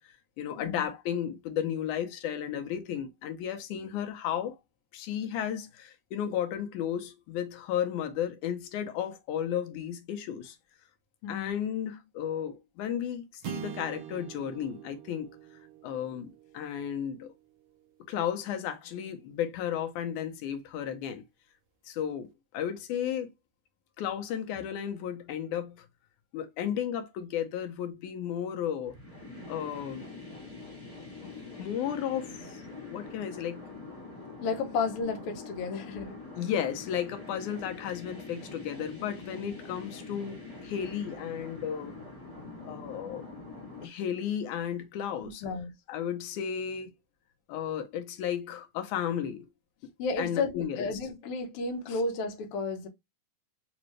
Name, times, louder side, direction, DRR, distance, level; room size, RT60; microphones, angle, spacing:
voice 1, 0.0-4.6 4.9-10.6 11.3-15.3 15.8-17.3 18.1-21.2 21.9-23.3 24.0-25.9 26.3-28.9 29.5-30.2 31.2-31.3 31.6-32.6 32.8-33.7 36.4-41.9 42.6-43.3 43.8-45.4 45.9-46.9 47.5-49.5 50.2-50.9 51.9-52.0, left 9 dB, 80° left, 2.2 m, -34 dB
sound 1, 13.4-17.9, right 9 dB, 90° right, 1.3 m, -44 dB
sound 2, 28.9-43.8, left 3 dB, 15° left, 1.3 m, -44 dB
voice 2, 34.4-36.2 39.4-39.5 45.2-45.7 50.0-52.9, left 4 dB, 65° left, 1.6 m, -32 dB
5.1 x 2.6 x 3.0 m
omnidirectional pair, 3.5 m